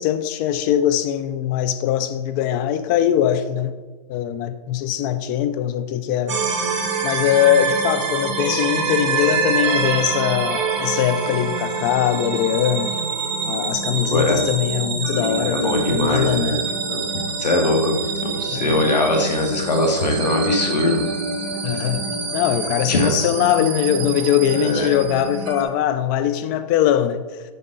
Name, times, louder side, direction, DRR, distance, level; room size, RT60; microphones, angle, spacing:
voice 1, 0.0-3.7 4.1-6.4 7.0-13.0 13.5-16.6 18.5-18.9 21.6-22.1 22.3-27.2, left 10 dB, 30° left, 0.5 m, -21 dB
sound 1, 6.3-25.6, right 4 dB, 45° right, 1.6 m, -26 dB
voice 2, 14.1-14.5 15.4-16.6 16.9-17.0 17.4-21.0 22.9-23.1 24.6-25.0, left 1 dB, 85° left, 2.0 m, -21 dB
7.5 x 5.3 x 4.0 m
hypercardioid pair, 135°, 21 cm